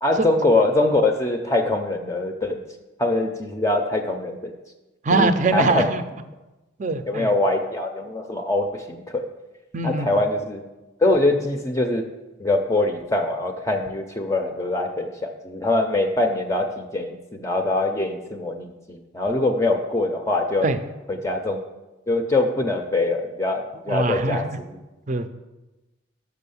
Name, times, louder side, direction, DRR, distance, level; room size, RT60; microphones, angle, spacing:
voice 1, 0.0-2.6 3.0-4.5 5.1-5.9 7.1-9.2 9.8-10.6 11.0-12.0 12.4-20.7 21.1-21.6 22.1-24.8, left 2 dB, 15° left, 4 dB, 0.5 m, -23 dB
voice 2, 5.0-6.0 6.8-7.3 9.7-10.1 20.6-20.8 23.9-24.6 25.1-25.3, right 3 dB, 40° right, 10 dB, 0.5 m, -22 dB
6.4 x 5.9 x 7.0 m, 1.1 s
head